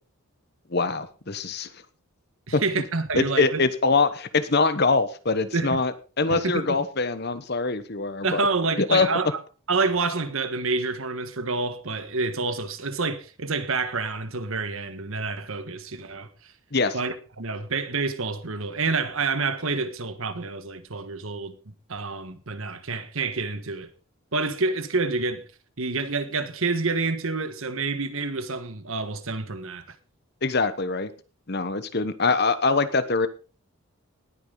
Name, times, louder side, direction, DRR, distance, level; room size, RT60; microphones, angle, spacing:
voice 1, 0.7-1.7 2.5-2.6 3.2-8.4 8.8-9.1 16.7-17.0 30.4-31.1 31.5-33.3, left 4 dB, 50° left, 1.1 m, -23 dB
voice 2, 2.5-3.7 5.5-5.8 6.3-6.8 8.2-9.4 9.7-16.5 16.9-21.5 21.9-23.9 24.3-25.5 25.8-30.0, right 3 dB, 70° right, 1.4 m, -28 dB
19.0 x 9.0 x 3.9 m
head